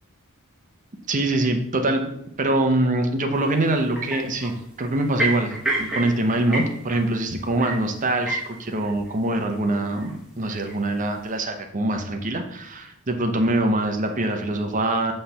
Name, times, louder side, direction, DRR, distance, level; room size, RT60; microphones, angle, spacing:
voice 1, 1.1-2.1 2.4-15.1, right 2 dB, 35° right, 5 dB, 0.7 m, -24 dB
sound 1, 3.6-3.7 4.0-4.5 5.0-7.1 7.4-7.8 8.1-9.0 9.3-9.5 9.8-10.1 10.4-11.0, right 1 dB, 5° right, 1.0 m, -28 dB
5.9 x 3.3 x 5.5 m, 0.77 s
head